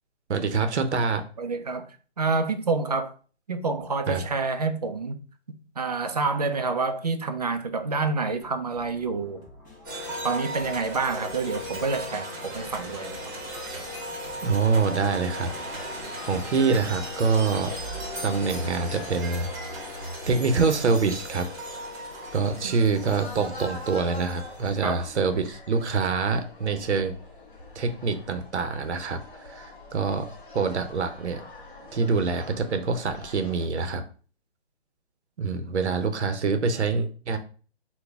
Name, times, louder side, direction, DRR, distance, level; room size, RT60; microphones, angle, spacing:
voice 1, 0.3-1.2 4.1-4.2 14.4-15.5 16.2-17.7 18.2-19.8 20.3-21.5 22.3-27.1 27.7-31.4 31.9-34.0 35.4-37.4, right 4 dB, 85° right, 0.7 m, -25 dB
voice 2, 1.4-3.1 3.5-5.2 5.8-9.4 10.2-13.2 22.6-22.8 24.8-25.1, right 4 dB, 40° right, 0.4 m, -28 dB
sound 1, 8.4-14.8, left 2 dB, 20° left, 0.6 m, -51 dB
sound 2, 9.8-25.0, equal, 20° right, 1.0 m, -37 dB
sound 3, 14.7-33.7, left 2 dB, 50° left, 1.5 m, -46 dB
4.0 x 2.2 x 3.4 m
hypercardioid pair, 165°, 33 cm